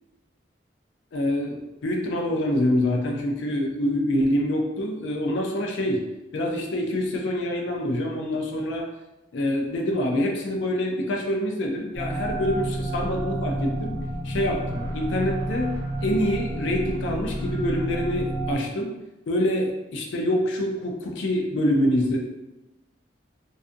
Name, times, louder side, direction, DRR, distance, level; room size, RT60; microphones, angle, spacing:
voice 1, 1.1-6.0 6.3-8.9 9.3-14.0 14.2-15.7 16.0-18.9 19.3-22.2, left 1 dB, 80° left, 1 dB, 0.4 m, -26 dB
sound 1, 11.9-18.5, right 1 dB, ahead, 1.0 m, -30 dB
2.6 x 2.3 x 2.4 m, 0.98 s
head